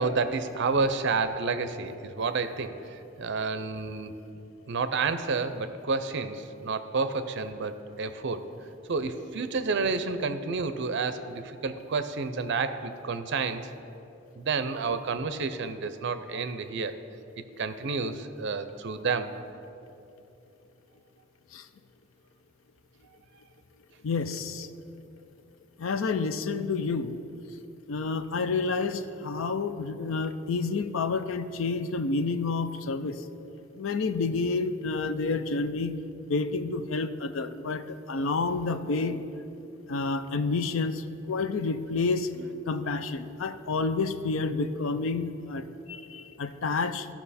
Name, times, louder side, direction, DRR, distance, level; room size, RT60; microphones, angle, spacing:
voice 1, 0.0-2.7 3.2-4.1 4.7-8.4 8.9-13.6 14.4-16.9 17.6-19.3 39.0-39.3 42.4-42.5, right 4 dB, 60° right, 10 dB, 0.5 m, -30 dB
voice 2, 24.0-24.7 25.8-27.2 27.9-33.2 33.8-35.9 36.3-39.2 39.9-42.3 42.7-47.1, left 4 dB, 70° left, 10 dB, 0.5 m, -29 dB
15.0 x 5.8 x 4.2 m, 2.8 s
head